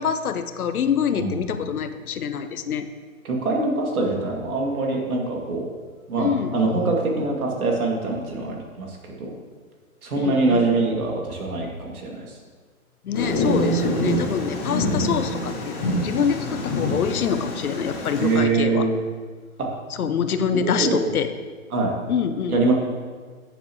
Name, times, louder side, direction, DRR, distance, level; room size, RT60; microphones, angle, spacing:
voice 1, 0.0-2.9 6.2-6.7 10.2-10.6 13.0-18.9 20.0-21.3 22.1-22.6, left 7 dB, 85° left, 10 dB, 0.8 m, -25 dB
voice 2, 3.2-5.6 6.1-9.3 10.0-12.4 13.7-13.8 18.2-19.0 19.6-19.7 20.5-21.2 21.7-21.9 22.5-22.7, right 3 dB, 80° right, -1 dB, 2.4 m, -24 dB
Thunder, 13.1-18.4, left 1 dB, 10° left, 0.4 m, -26 dB
11.0 x 7.2 x 3.1 m, 1.5 s
hypercardioid pair, 145°, 43 cm